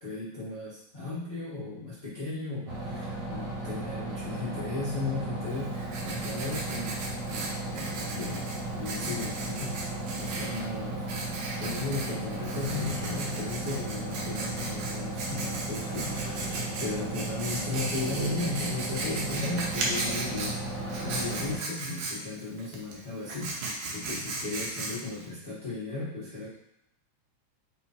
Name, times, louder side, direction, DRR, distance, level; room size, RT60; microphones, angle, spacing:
voice 1, 0.0-7.0 7.3-8.5 8.7-9.8 10.2-11.0 11.6-16.1 16.8-23.6 23.9-26.5, left 3 dB, 80° left, -11 dB, 0.4 m, -36 dB
sound 1, 2.7-21.6, right 2 dB, 50° right, 1.4 m, -35 dB
Writing, 5.5-25.3, right 2 dB, 75° right, 2.0 m, -37 dB
sound 2, 10.4-10.8 12.1-13.7 15.6-16.8 19.5-21.3, equal, 30° left, 0.8 m, -46 dB
4.7 x 2.5 x 4.2 m, 0.80 s
omnidirectional pair, 3.3 m